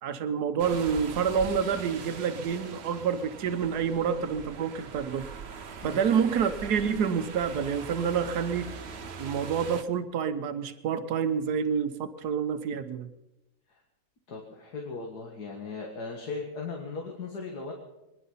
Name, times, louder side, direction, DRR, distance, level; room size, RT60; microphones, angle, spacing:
voice 1, 0.0-5.2 5.8-8.7 9.2-13.1, right 7 dB, 85° right, 10 dB, 1.5 m, -28 dB
sound 1, 0.6-9.8, right 5 dB, 45° right, 1.1 m, -41 dB
voice 2, 14.3-17.7, left 4 dB, 90° left, 1 dB, 2.4 m, -38 dB
24.0 x 10.5 x 5.6 m, 0.99 s
omnidirectional pair, 1.6 m